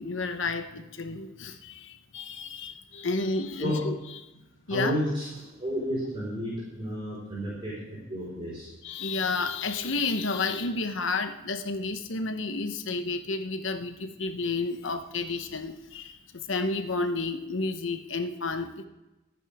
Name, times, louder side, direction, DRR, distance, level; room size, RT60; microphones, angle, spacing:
voice 1, 0.0-3.9 4.7-5.0 8.8-16.2 16.5-18.9, left 3 dB, 70° left, 8 dB, 1.0 m, -31 dB
voice 2, 4.7-8.7, equal, 25° right, -7 dB, 4.7 m, -31 dB
25.0 x 9.2 x 3.6 m, 0.98 s
head